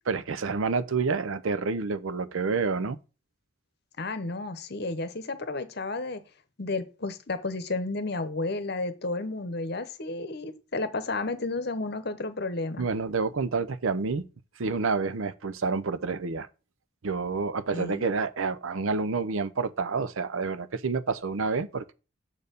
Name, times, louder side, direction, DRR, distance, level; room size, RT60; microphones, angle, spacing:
voice 1, 0.1-3.0 12.8-14.3 14.6-16.5 17.0-21.9, right 4 dB, 75° right, 0.6 m, -28 dB
voice 2, 4.0-6.2 6.6-12.9 17.7-18.0, left 3 dB, 50° left, 0.8 m, -32 dB
6.6 x 4.5 x 5.1 m
head